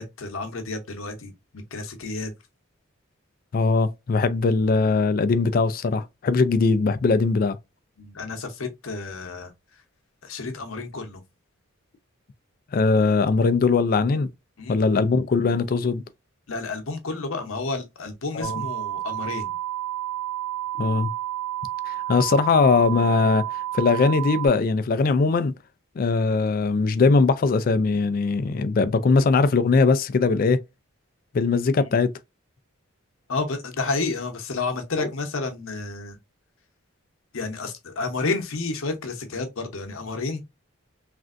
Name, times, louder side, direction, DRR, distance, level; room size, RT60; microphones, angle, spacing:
voice 1, 0.0-2.3 8.0-9.5 10.2-11.2 14.6-14.8 16.5-19.6 31.9-32.0 33.3-36.2 37.3-40.4, left 3 dB, 80° left, 0.8 m, -31 dB
voice 2, 3.5-7.6 12.7-14.3 14.7-16.0 18.3-18.6 20.8-21.1 21.9-25.5 26.0-30.6 31.3-32.1 35.0-35.1, left 4 dB, 45° left, 0.3 m, -21 dB
sound 1, 18.4-24.5, right 13 dB, 85° right, 0.9 m, -30 dB
3.3 x 2.5 x 2.4 m
head